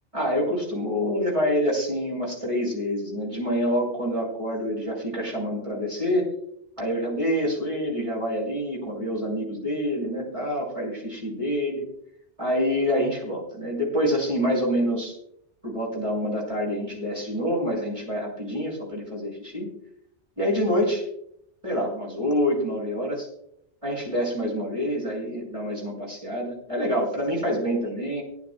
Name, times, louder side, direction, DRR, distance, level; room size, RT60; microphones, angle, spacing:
voice 1, 0.1-6.3 6.8-11.9 12.4-15.2 15.6-19.7 20.4-21.1 21.6-23.3 23.8-28.2, equal, 25° right, -4 dB, 6.8 m, -27 dB
23.5 x 11.5 x 2.4 m, 0.70 s
omnidirectional pair, 1.2 m